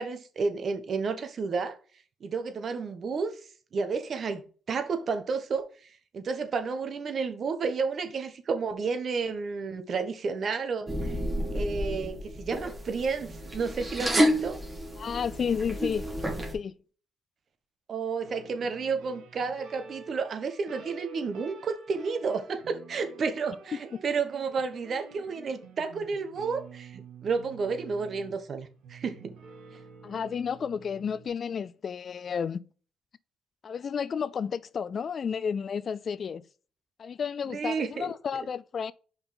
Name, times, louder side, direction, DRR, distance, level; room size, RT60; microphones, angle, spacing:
voice 1, 0.0-1.8 2.2-3.4 3.7-5.7 6.1-11.2 11.5-14.6 17.9-29.3 37.5-38.1, right 5 dB, 50° right, 1.2 m, -31 dB
sound 1, 10.9-16.5, equal, 25° right, 2.5 m, -30 dB
voice 2, 15.0-16.1 16.5-16.7 23.7-24.0 30.0-32.6 33.6-36.4 37.0-38.9, left 6 dB, 50° left, 0.4 m, -32 dB
sound 2, 18.2-31.3, right 5 dB, 85° right, 1.9 m, -49 dB
5.5 x 4.7 x 5.1 m
cardioid pair, 90°, 0 cm